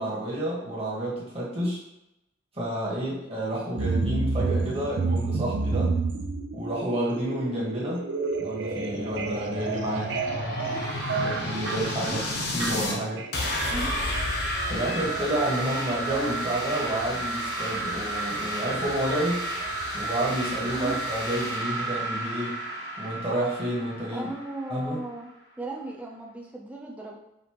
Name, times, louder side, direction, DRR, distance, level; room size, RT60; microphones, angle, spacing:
voice 1, 0.0-1.8 2.5-6.0 6.5-8.0 8.4-10.1 11.1-12.2 12.5-13.2 14.6-19.5 19.9-22.6 23.0-24.3 24.7-25.0, right 1 dB, 30° right, -6 dB, 1.2 m, -30 dB
sound 1, 3.8-19.9 20.2-20.3, right 3 dB, 60° right, 0.4 m, -31 dB
sound 2, 8.3-13.0 13.3-24.9, equal, 55° left, 0.8 m, -32 dB
voice 2, 10.3-10.8 12.0-12.2 13.7-13.9 20.7-21.0 24.1-25.3 25.6-27.2, right 1 dB, 5° right, -2 dB, 0.5 m, -36 dB
5.1 x 2.7 x 2.9 m, 0.87 s
head